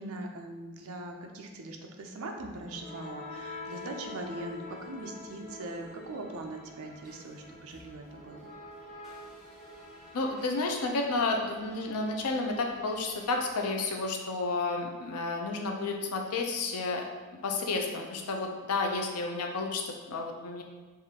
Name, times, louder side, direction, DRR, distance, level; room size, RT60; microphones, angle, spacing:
voice 1, 0.0-8.4, right 2 dB, 70° right, 3 dB, 0.5 m, -41 dB
sound 1, 2.4-14.3, left 2 dB, ahead, 1.1 m, -47 dB
voice 2, 10.1-17.0 17.4-20.6, left 3 dB, 80° left, 2 dB, 0.5 m, -31 dB
4.8 x 2.5 x 2.8 m, 1.3 s
head